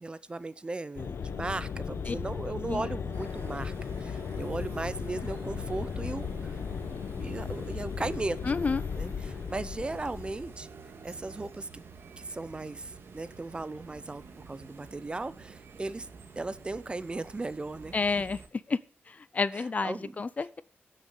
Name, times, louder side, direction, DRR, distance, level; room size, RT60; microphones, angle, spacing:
voice 1, 0.0-6.6 7.2-8.4 9.0-10.7 11.0-11.7 12.2-16.1 16.3-17.9 19.5-20.2, right 2 dB, 25° right, 16 dB, 0.6 m, -37 dB
sound 1, 1.0-10.6, left 6 dB, 80° left, 1.0 m, -36 dB
sound 2, 3.1-18.5, right 5 dB, 70° right, 1.9 m, -49 dB
voice 2, 8.4-8.8 17.9-18.4 18.7-18.8 19.1-20.6, left 4 dB, 35° left, 17 dB, 0.5 m, -30 dB
14.5 x 6.5 x 7.2 m, 0.41 s
wide cardioid pair, 160°, 4 cm